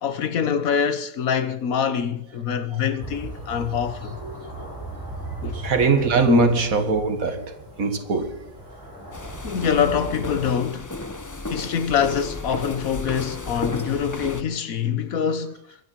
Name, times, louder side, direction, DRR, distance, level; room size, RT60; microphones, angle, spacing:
voice 1, 0.0-4.2 5.4-5.6 6.3-6.6 9.4-10.9 11.5-15.6, left 7 dB, 85° left, 1.5 m, -24 dB
sound 1, 3.0-10.5, right 2 dB, 15° right, 6.6 m, -37 dB
voice 2, 4.2-4.8 5.1-5.2 5.5-8.5, right 5 dB, 90° right, 2.1 m, -23 dB
sound 2, 9.1-14.4, left 2 dB, 15° left, 0.7 m, -33 dB
23.0 x 9.6 x 4.6 m
omnidirectional pair, 1.4 m